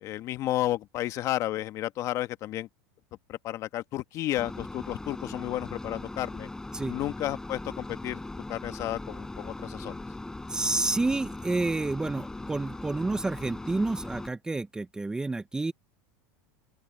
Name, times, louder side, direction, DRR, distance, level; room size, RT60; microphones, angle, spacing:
voice 1, 0.0-2.7 3.3-6.5 6.8-8.2 8.5-10.0, left 14 dB, 45° left, 1.3 m, -32 dB
sound 1, 4.3-14.3, left 2 dB, 10° left, 7.9 m, -39 dB
voice 2, 10.5-15.7, right 2 dB, 10° right, 0.7 m, -29 dB
open air
supercardioid pair, 120°, 7 cm